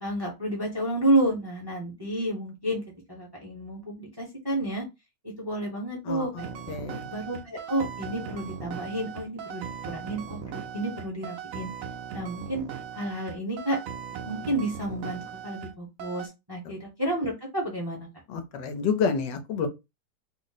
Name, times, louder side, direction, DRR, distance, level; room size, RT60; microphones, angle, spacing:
voice 1, 0.0-2.8 3.1-4.8 5.2-6.5 7.1-11.7 12.1-12.6 12.9-13.8 14.2-18.1, right 1 dB, 20° right, 0.6 m, -30 dB
sound 1, 6.4-15.7 16.0-16.3, right 7 dB, 75° right, 0.7 m, -39 dB
voice 2, 6.7-7.1 18.3-19.7, left 5 dB, 85° left, 1.4 m, -28 dB
3.2 x 2.0 x 4.0 m
omnidirectional pair, 1.9 m